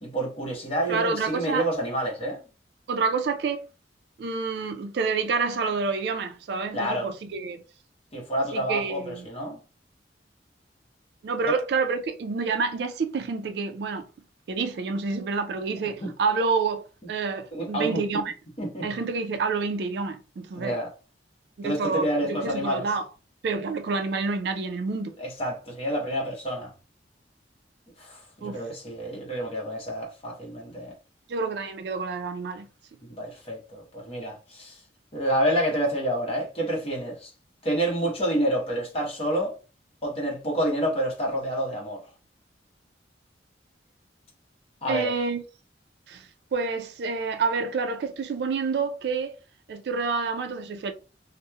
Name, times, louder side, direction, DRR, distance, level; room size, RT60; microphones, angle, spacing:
voice 1, 0.0-2.4 6.7-7.1 8.1-9.6 11.4-11.5 16.0-16.1 17.5-18.2 18.6-18.9 20.6-20.9 21.6-22.9 25.2-26.7 28.0-30.9 33.0-34.8 35.1-37.3 37.6-39.5 40.0-42.0 44.8-45.1, right 1 dB, 35° left, 0.8 m, -28 dB
voice 2, 0.9-1.7 2.9-3.7 4.2-7.6 8.5-9.3 11.2-14.1 14.5-18.3 18.8-20.8 21.6-23.1 23.4-25.1 28.4-28.6 31.3-32.7 44.9-45.4 46.1-49.3 49.7-50.9, right 4 dB, 60° right, 0.3 m, -28 dB
2.9 x 2.0 x 2.2 m
head